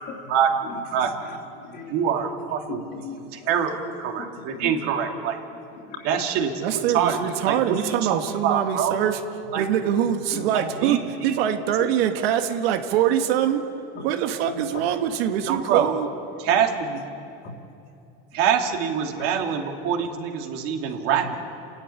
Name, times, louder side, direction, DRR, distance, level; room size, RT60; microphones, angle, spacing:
voice 1, 0.3-1.1 1.9-2.9 3.3-3.7 4.0-5.4 6.0-7.2 7.4-9.0 9.5-9.6 10.5-11.4 15.4-16.0 16.4-17.0 18.3-21.4, right 8 dB, 50° right, 2 dB, 2.6 m, -25 dB
voice 2, 1.3-2.0 2.7-3.5 4.2-4.7 5.9-6.1 10.3-10.4 13.9-14.0 19.1-19.2, left 5 dB, 35° left, -1 dB, 3.3 m, -38 dB
voice 3, 6.6-9.2 9.6-11.0 11.2-13.7 14.0-16.1, right 10 dB, 80° right, 6 dB, 1.9 m, -23 dB
30.0 x 13.5 x 10.0 m, 2.6 s
cardioid pair, 170°, 30 cm